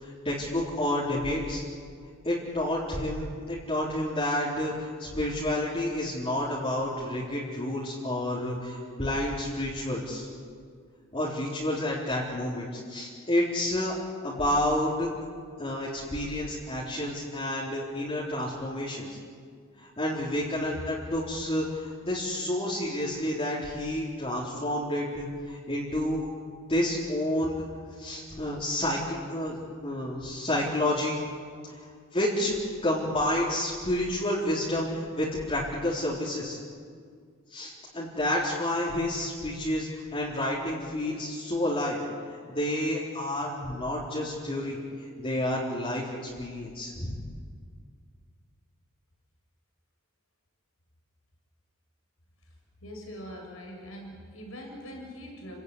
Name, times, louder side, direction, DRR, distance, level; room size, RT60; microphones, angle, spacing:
voice 1, 0.0-1.6 2.2-10.3 11.1-14.0 14.2-15.1 15.6-19.1 19.8-26.2 26.7-27.7 28.0-31.2 31.6-31.8 32.1-32.5 32.8-36.6 37.5-42.0 42.3-47.2, left 1 dB, 25° left, -6 dB, 4.0 m, -30 dB
voice 2, 52.8-55.6, equal, 85° left, 1 dB, 7.1 m, -42 dB
30.0 x 17.0 x 9.9 m, 2.1 s
head